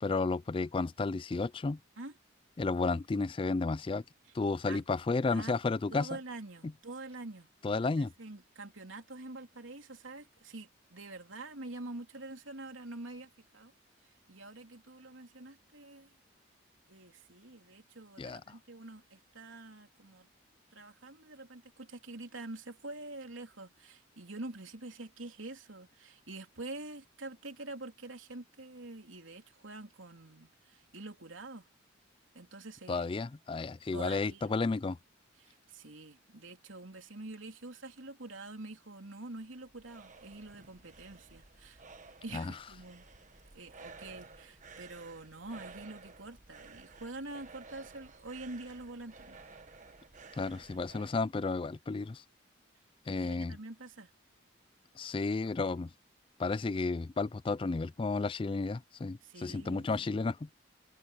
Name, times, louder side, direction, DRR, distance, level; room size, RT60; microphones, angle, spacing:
voice 1, 0.0-1.8 2.6-4.0 4.3-6.1 7.6-8.1 18.2-18.5 32.9-35.0 42.3-42.5 50.4-52.2 53.1-53.6 55.0-55.9 56.4-60.5, left 3 dB, 25° left, 0.3 m, -32 dB
voice 2, 5.9-7.5 8.0-13.7 14.3-16.1 16.9-20.3 20.7-31.7 32.3-33.1 33.9-34.6 35.4-41.8 42.2-43.0 43.5-49.4 53.1-54.1 59.2-60.2, right 2 dB, 80° right, 3.2 m, -46 dB
sound 1, 39.3-51.2, right 4 dB, 40° right, 1.4 m, -54 dB
head